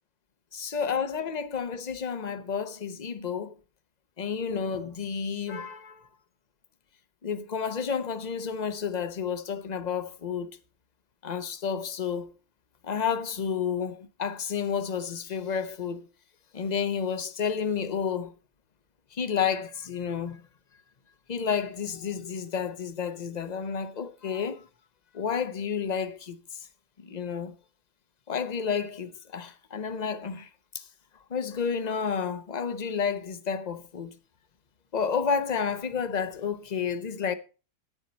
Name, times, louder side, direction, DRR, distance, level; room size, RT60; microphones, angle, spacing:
voice 1, 0.5-3.6 4.2-6.1 7.2-10.5 11.2-12.3 12.8-16.1 16.5-18.3 19.1-20.4 21.3-24.6 25.1-26.6 27.0-27.5 28.3-30.5 30.7-30.9 31.3-34.1 34.9-37.3, left 6 dB, 35° left, 0.7 m, -31 dB
10.5 x 9.1 x 4.1 m
omnidirectional pair, 1.6 m